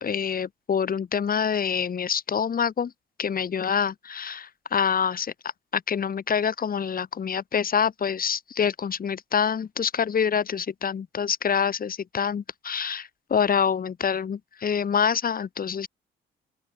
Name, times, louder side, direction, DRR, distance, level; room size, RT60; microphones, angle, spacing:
voice 1, 0.0-2.9 3.2-5.3 5.7-15.9, left 7 dB, 45° left, 2.7 m, -26 dB
open air
cardioid pair, 90°, 20 cm